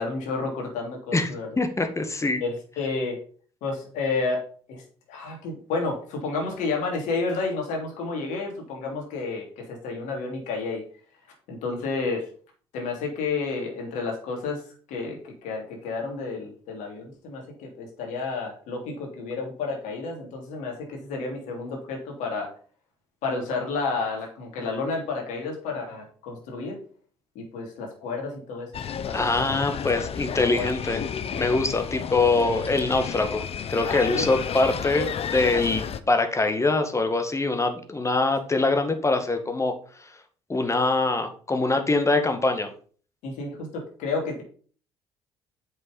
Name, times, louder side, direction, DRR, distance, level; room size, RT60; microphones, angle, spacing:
voice 1, 0.0-1.5 2.4-3.2 3.6-4.4 4.7-4.8 5.1-10.8 11.5-12.3 12.7-14.6 14.9-22.5 23.2-26.8 27.3-28.7 29.0-29.6 30.4-30.7 33.8-34.3 43.2-44.4, left 4 dB, 65° left, 1 dB, 3.1 m, -31 dB
voice 2, 1.6-2.4 29.1-31.0 31.3-39.7 40.5-42.7, left 3 dB, 20° left, 7 dB, 1.9 m, -24 dB
sound 1, 28.7-36.0, left 8 dB, 45° left, 0.9 m, -32 dB
7.6 x 6.0 x 5.3 m, 0.43 s
hypercardioid pair, 55°, 13 cm